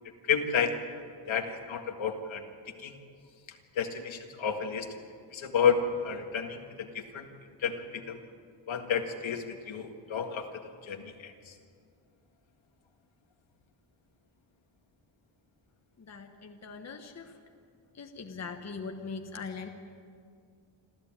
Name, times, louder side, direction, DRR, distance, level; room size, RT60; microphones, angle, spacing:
voice 1, 0.3-0.8 1.3-2.4 2.8-3.0 3.8-4.9 5.3-7.3 7.6-8.2 8.7-11.5, left 6 dB, 70° left, 5 dB, 1.9 m, -31 dB
voice 2, 16.0-17.3 18.0-19.7, left 4 dB, 35° left, 4 dB, 1.2 m, -41 dB
26.0 x 14.0 x 8.9 m, 2.2 s
wide cardioid pair, 180°, 48 cm